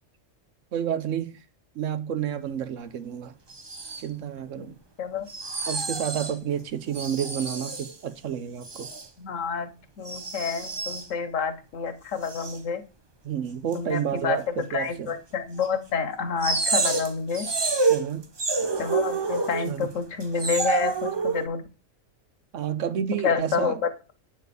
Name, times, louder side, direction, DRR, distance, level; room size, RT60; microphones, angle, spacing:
voice 1, 0.7-1.4 1.7-3.3 4.0-4.8 5.7-8.9 13.2-15.1 17.9-18.2 19.6-19.9 22.5-23.8, right 9 dB, 75° right, 1.2 m, -30 dB
sound 1, 3.5-4.1 5.3-6.3 6.9-8.0 8.6-9.1 10.1-11.1 12.2-12.6 13.7-13.8 15.1-15.2 15.6-15.7 16.4-19.9 20.2-21.5, right 4 dB, 25° right, 0.6 m, -28 dB
voice 2, 4.6-5.3 9.2-9.7 10.0-12.8 13.7-17.5 18.8-21.7 23.2-23.7, left 6 dB, 75° left, 1.4 m, -29 dB
8.2 x 4.3 x 6.7 m
omnidirectional pair, 1.3 m